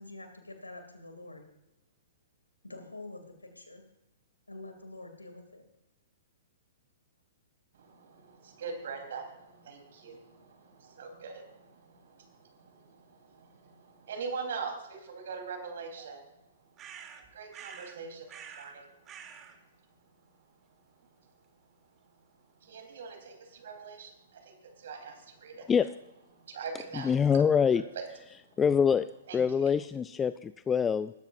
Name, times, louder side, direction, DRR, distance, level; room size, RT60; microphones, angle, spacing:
voice 1, 0.0-1.4 2.6-3.8 4.5-5.6, left 2 dB, 85° left, 6 dB, 2.6 m, -46 dB
voice 2, 7.7-16.2 17.0-19.5 21.2-21.3 22.6-25.7 26.3-27.1 27.9-28.1 28.3-28.4 29.3-29.7, right 5 dB, 60° right, 3 dB, 3.8 m, -43 dB
sound 1, 16.8-18.0 18.3-18.8 19.1-19.6, right 8 dB, 25° right, 1.5 m, -47 dB
voice 3, 26.9-27.8 28.6-29.1 29.3-31.1, left 7 dB, 15° left, 15 dB, 0.3 m, -25 dB
20.5 x 13.5 x 2.6 m, 0.93 s
figure-of-eight pair, 115°, 0 cm